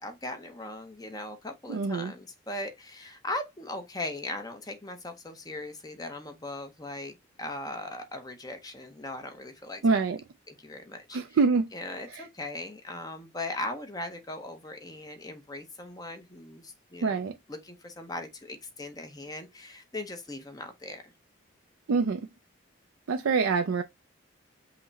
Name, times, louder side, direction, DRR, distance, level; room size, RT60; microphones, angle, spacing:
voice 1, 0.0-10.0 10.5-11.2 11.7-17.2 17.5-21.1, left 2 dB, 20° left, 0.7 m, -39 dB
voice 2, 1.7-2.1 9.8-10.2 11.1-11.7 12.1-12.2 17.0-17.3 21.9-22.3 23.1-23.8, right 4 dB, 80° right, 0.4 m, -25 dB
5.7 x 2.1 x 4.0 m
head